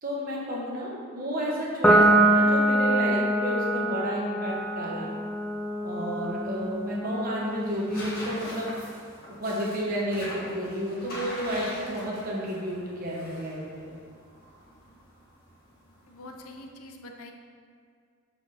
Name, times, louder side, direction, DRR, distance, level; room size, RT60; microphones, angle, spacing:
voice 1, 0.0-5.1 5.8-8.7 9.4-13.9, equal, 40° right, -5 dB, 1.4 m, -31 dB
Piano, 1.8-8.5, right 1 dB, 5° left, 0.4 m, -24 dB
sound 1, 4.4-16.7, equal, 45° left, 1.7 m, -44 dB
voice 2, 16.1-17.3, left 1 dB, 80° left, 3 dB, 0.7 m, -44 dB
6.8 x 4.5 x 4.2 m, 2.2 s
head